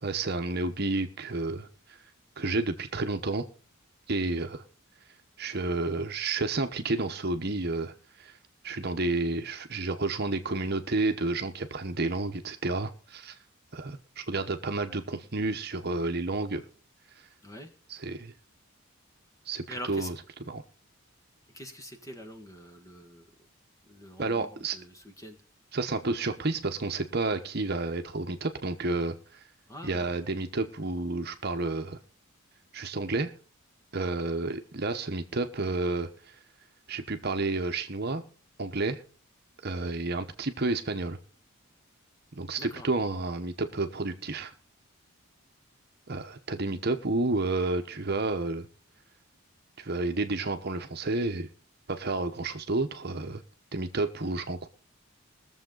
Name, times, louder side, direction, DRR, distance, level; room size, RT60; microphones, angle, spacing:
voice 1, 0.0-2.0 2.4-3.4 4.1-4.6 5.4-8.4 8.6-13.4 13.7-16.6 17.9-18.3 19.5-20.6 24.2-24.8 25.7-29.2 29.8-32.0 32.7-33.3 33.9-36.3 36.9-38.2 38.6-39.0 39.6-41.2 42.3-44.5 46.1-48.7 49.8-51.5 51.9-53.4 53.7-54.7, right 2 dB, 45° right, 6 dB, 1.0 m, -30 dB
voice 2, 19.7-20.1 21.5-23.3 23.9-25.4 29.7-30.1 42.6-42.9, equal, 15° left, 6 dB, 1.5 m, -44 dB
21.5 x 7.3 x 3.9 m, 0.37 s
head